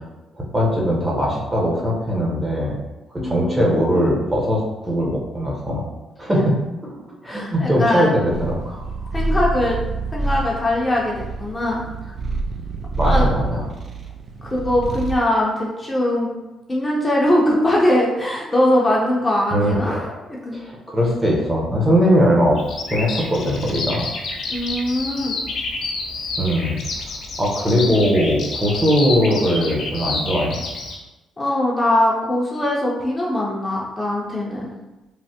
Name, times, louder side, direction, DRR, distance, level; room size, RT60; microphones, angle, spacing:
voice 1, 0.3-2.8 3.1-5.9 6.2-6.5 6.8-8.9 13.0-13.6 19.5-20.2 20.5-22.6 22.9-24.1 26.4-26.8 27.4-30.6, equal, 20° right, -2 dB, 0.8 m, -20 dB
voice 2, 3.2-4.1 6.3-6.4 7.2-8.2 9.1-9.8 10.1-11.8 13.0-13.3 14.4-16.3 16.7-19.9 20.3-20.6 24.5-25.4 31.4-34.7, left 1 dB, 20° left, -4 dB, 0.6 m, -21 dB
Purr, 8.3-15.3, right 2 dB, 45° right, 0.3 m, -26 dB
Bird vocalization bird call bird song, 22.6-30.9, left 3 dB, 70° left, 0.6 m, -29 dB
3.2 x 2.1 x 2.7 m, 1.0 s
cardioid pair, 90°, 0 cm